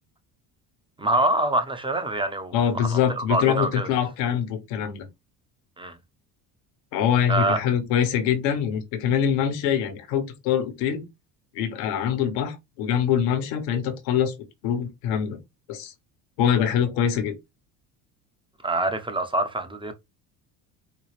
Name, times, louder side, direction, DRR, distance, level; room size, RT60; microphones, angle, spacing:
voice 1, 1.0-3.9 5.8-6.0 7.3-7.6 18.6-19.9, right 2 dB, 10° right, 0.9 m, -25 dB
voice 2, 2.5-5.1 6.9-11.0 11.5-14.3 14.6-15.4 15.7-15.9 16.4-17.3, left 8 dB, 80° left, 1.2 m, -24 dB
4.7 x 2.3 x 3.3 m
hypercardioid pair, 70°, 49 cm